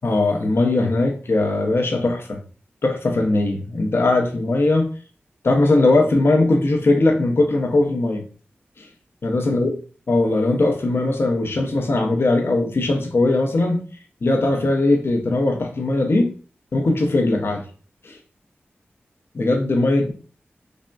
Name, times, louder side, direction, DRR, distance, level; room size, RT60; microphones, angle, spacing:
voice 1, 0.0-2.4 2.8-4.9 5.4-8.2 8.8-8.9 9.2-9.7 10.1-13.8 14.2-16.3 16.7-17.6 18.0-18.2 19.3-20.1, left 2 dB, 65° left, 3 dB, 0.6 m, -19 dB
3.4 x 2.0 x 2.3 m, 0.40 s
cardioid pair, 45°, 4 cm